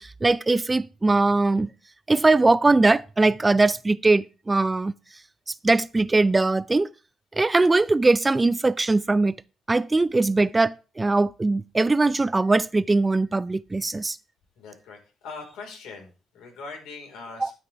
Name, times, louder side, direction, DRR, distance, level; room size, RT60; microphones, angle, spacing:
voice 1, 0.0-1.7 2.1-4.9 5.6-6.9 7.3-9.4 9.7-14.2 17.4-17.5, right 3 dB, 20° right, 0.4 m, -21 dB
voice 2, 14.6-15.0 15.2-17.5, left 4 dB, 85° left, 4.6 m, -41 dB
13.0 x 8.9 x 3.5 m
cardioid pair, 90°, 0 cm